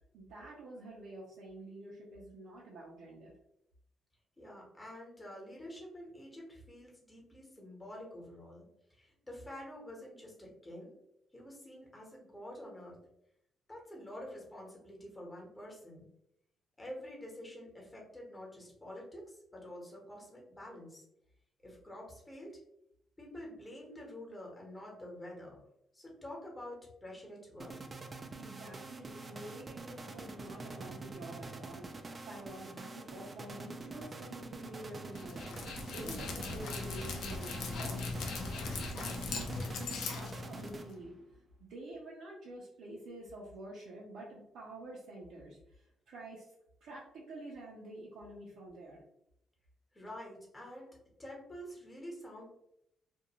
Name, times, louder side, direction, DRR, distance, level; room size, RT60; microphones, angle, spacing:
voice 1, 0.1-3.3 28.3-41.2 41.6-46.5 46.8-49.0, right 2 dB, 80° right, -6 dB, 0.6 m, -48 dB
voice 2, 4.4-8.6 8.9-10.9 11.3-13.0 13.7-16.1 16.8-21.0 21.6-22.6 23.2-25.6 25.9-27.7 49.9-52.4, left 1 dB, 15° left, -2 dB, 1.1 m, -48 dB
sound 1, 27.6-41.2, right 3 dB, 30° right, 0.3 m, -46 dB
Dog, 35.2-40.9, left 4 dB, 80° left, 0.5 m, -39 dB
2.5 x 2.2 x 2.9 m, 0.79 s
cardioid pair, 90°, 0 cm